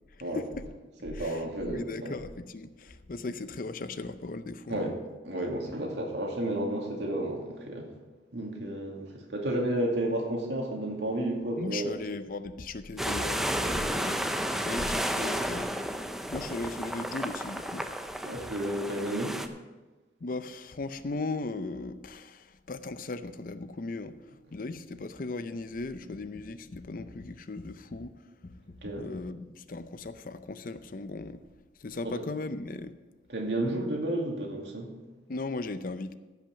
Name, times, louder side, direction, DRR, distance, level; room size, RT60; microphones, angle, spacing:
voice 1, 0.1-0.7 1.1-4.8 11.6-17.9 20.2-31.4 31.8-33.0 35.3-36.1, left 3 dB, 50° left, 0.6 m, -38 dB
voice 2, 1.0-2.2 4.7-4.9 5.2-7.9 8.3-11.9 18.2-19.4 28.8-29.1 33.3-34.9, right 1 dB, 80° right, 2.4 m, -32 dB
sound 1, 13.0-19.5, equal, ahead, 0.5 m, -32 dB
15.5 x 5.9 x 5.9 m
head